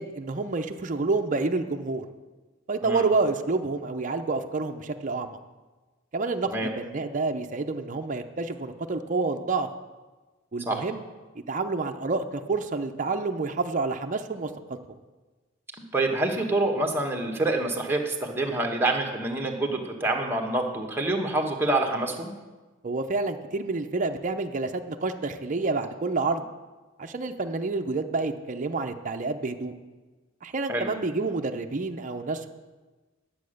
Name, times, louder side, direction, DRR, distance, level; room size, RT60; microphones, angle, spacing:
voice 1, 0.0-2.1 2.7-5.4 6.1-9.7 10.5-11.0 11.5-14.5 22.8-26.4 27.0-29.7 30.4-32.5, right 3 dB, 40° right, 5 dB, 0.6 m, -28 dB
voice 2, 15.9-22.3 30.7-30.9, right 2 dB, 10° right, 1 dB, 1.2 m, -26 dB
10.5 x 7.7 x 6.5 m, 1.2 s
head